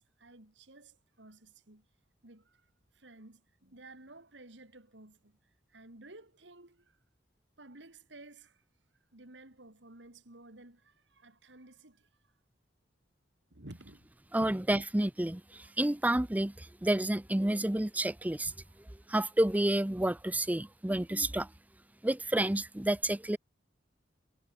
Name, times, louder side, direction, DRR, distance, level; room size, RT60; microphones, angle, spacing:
voice 1, 0.0-1.9 2.2-5.4 5.7-7.0 7.6-8.6 9.1-12.3 13.5-14.1 14.4-14.8 15.6-15.7 18.7-19.1, right 2 dB, 75° right, 3.3 m, -54 dB
voice 2, 14.3-18.5 19.1-21.5 22.0-23.4, right 1 dB, 10° right, 0.5 m, -30 dB
head